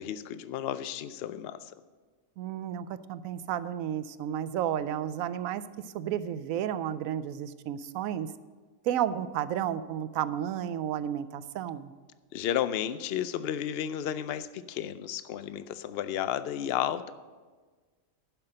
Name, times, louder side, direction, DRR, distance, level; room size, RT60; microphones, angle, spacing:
voice 1, 0.0-1.7 12.3-17.1, left 10 dB, 60° left, 14 dB, 0.7 m, -32 dB
voice 2, 2.4-5.6 5.9-8.3 8.8-11.9, right 10 dB, 85° right, 14 dB, 1.0 m, -32 dB
11.0 x 5.9 x 7.7 m, 1.4 s
omnidirectional pair, 1.4 m